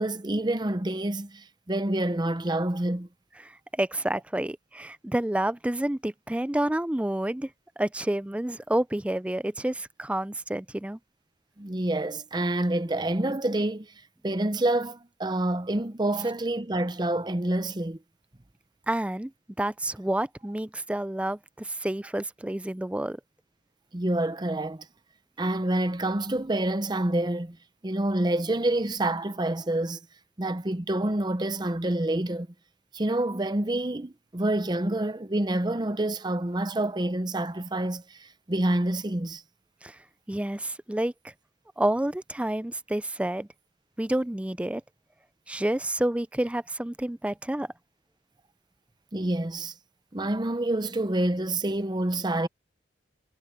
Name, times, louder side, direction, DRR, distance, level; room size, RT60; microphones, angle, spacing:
voice 1, 0.0-3.1 11.6-13.9 14.2-18.0 23.9-24.9 25.4-27.6 27.8-30.0 30.4-32.5 32.9-39.4 49.1-49.7 50.1-52.5, right 1 dB, 25° right, 0.8 m, -27 dB
voice 2, 3.5-7.5 7.8-11.0 18.9-19.3 19.6-23.2 39.8-40.0 40.3-41.3 41.8-43.5 44.0-44.8 45.5-47.7, right 1 dB, 5° right, 0.4 m, -29 dB
head